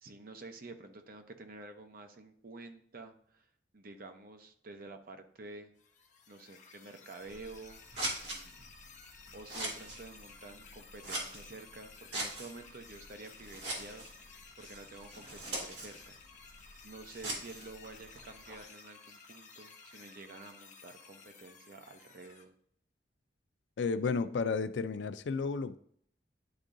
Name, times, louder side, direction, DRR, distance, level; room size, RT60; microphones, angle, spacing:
voice 1, 0.0-3.5 3.7-5.7 6.3-7.8 8.2-8.7 9.3-14.1 14.6-16.2 16.8-22.5, right 3 dB, 55° right, 0.7 m, -50 dB
sound 1, 5.8-22.4, left 5 dB, 45° left, 0.8 m, -55 dB
Scissors, 7.2-18.6, right 2 dB, 75° right, 2.1 m, -43 dB
voice 2, 23.8-25.8, left 4 dB, 80° left, 0.4 m, -32 dB
10.5 x 3.7 x 2.6 m
head